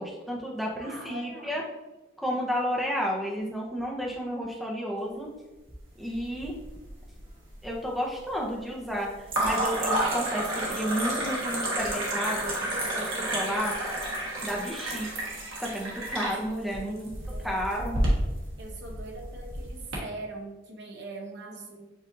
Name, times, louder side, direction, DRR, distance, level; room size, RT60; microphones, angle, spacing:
voice 1, 0.0-1.6 2.2-5.3 6.0-6.6 7.6-9.1 9.4-12.5 13.2-13.7 14.4-15.1 15.6-17.0 17.4-18.0, equal, ahead, -2 dB, 0.6 m, -31 dB
voice 2, 0.8-1.6 16.8-17.7 18.6-21.9, right 2 dB, 55° right, 2 dB, 0.8 m, -42 dB
sound 1, 6.1-6.9 7.2-7.8 9.3-20.0, right 1 dB, 70° right, 1.3 m, -30 dB
7.5 x 2.5 x 2.6 m, 1.1 s
head